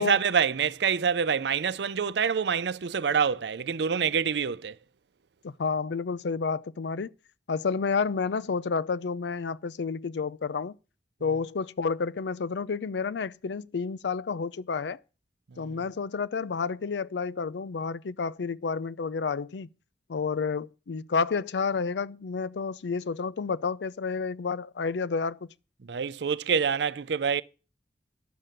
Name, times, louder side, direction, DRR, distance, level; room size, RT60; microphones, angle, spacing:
voice 1, 0.0-4.8 15.5-15.8 25.8-27.4, right 6 dB, 80° right, 0.5 m, -26 dB
voice 2, 5.4-7.1 7.5-10.8 11.2-15.0 15.6-19.7 20.1-25.4, left 5 dB, 85° left, 0.5 m, -30 dB
10.5 x 7.5 x 6.6 m
head